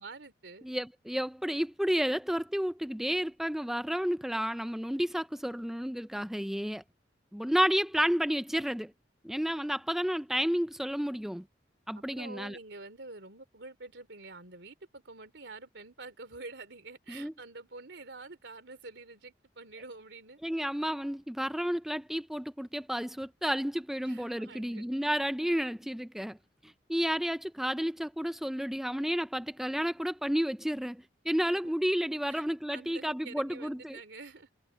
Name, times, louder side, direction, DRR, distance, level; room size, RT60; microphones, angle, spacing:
voice 1, 0.0-0.7 11.9-20.4 24.0-24.9 31.5-31.7 32.3-34.5, right 3 dB, 75° right, 3.0 m, -47 dB
voice 2, 0.6-6.8 7.3-8.9 9.2-11.4 11.9-12.6 17.1-17.3 20.4-26.4 26.6-34.0, equal, ahead, 0.4 m, -31 dB
head